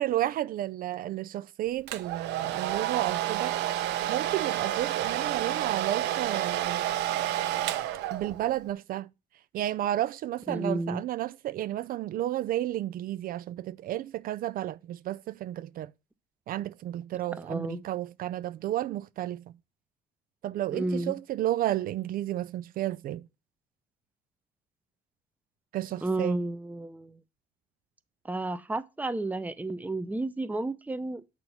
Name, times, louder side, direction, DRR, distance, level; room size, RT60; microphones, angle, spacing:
voice 1, 0.0-3.6 4.1-6.8 8.1-9.1 9.5-15.9 16.5-19.4 20.4-23.2 25.7-26.4, right 13 dB, 60° right, 0.4 m, -32 dB
Domestic sounds home sounds, 1.9-8.6, right 13 dB, 90° right, 0.8 m, -30 dB
voice 2, 10.5-11.0 17.4-17.8 20.7-21.2 26.0-27.2 28.2-31.2, right 2 dB, 10° right, 0.7 m, -32 dB
7.6 x 4.4 x 5.5 m
cardioid pair, 110°, 17 cm